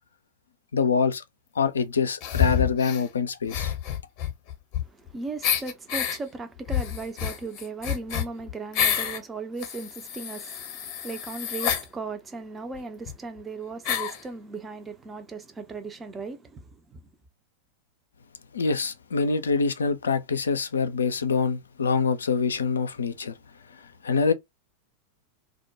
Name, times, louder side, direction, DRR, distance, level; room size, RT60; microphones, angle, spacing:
voice 1, 0.7-1.2 1.6-3.7 18.5-23.3 23.8-24.3, left 5 dB, 70° left, 0.3 m, -25 dB
sound 1, 2.2-3.0 3.5-5.1 5.4-6.2 6.7-9.2 9.6-11.9 12.8-12.9 13.1-13.2 13.8-14.2, left 9 dB, 40° left, 0.7 m, -28 dB
voice 2, 5.0-17.0, right 3 dB, 15° right, 0.5 m, -37 dB
2.3 x 2.1 x 2.8 m
figure-of-eight pair, 90°, 0 cm